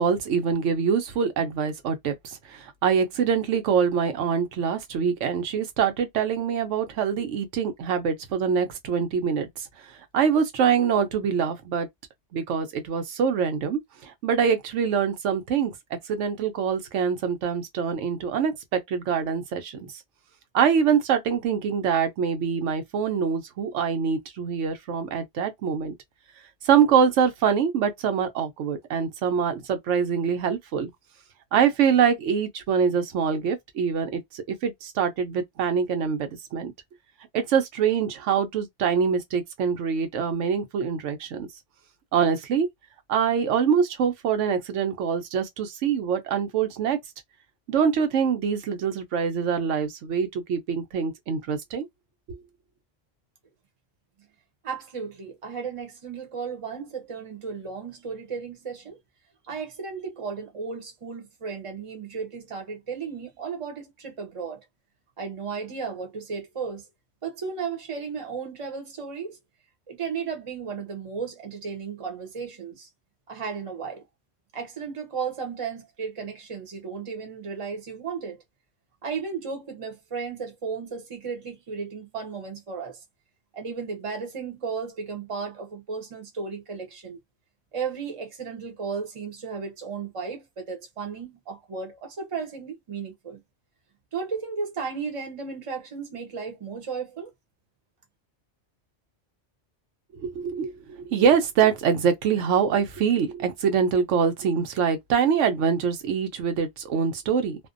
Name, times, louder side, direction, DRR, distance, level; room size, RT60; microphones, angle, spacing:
voice 1, 0.0-11.9 12.3-15.7 16.1-19.8 20.5-25.9 26.6-30.9 31.5-36.7 37.3-41.5 42.1-42.7 43.1-47.0 47.7-51.9 100.2-107.6, right 7 dB, 90° right, 1.0 m, -24 dB
voice 2, 54.6-59.0 59.5-64.6 65.2-66.8 67.2-69.4 69.9-72.9 73.3-74.0 74.5-78.4 79.0-83.0 83.5-87.2 87.7-93.4 94.1-97.3, right 5 dB, 35° right, 0.7 m, -34 dB
2.5 x 2.1 x 2.4 m
omnidirectional pair, 1.2 m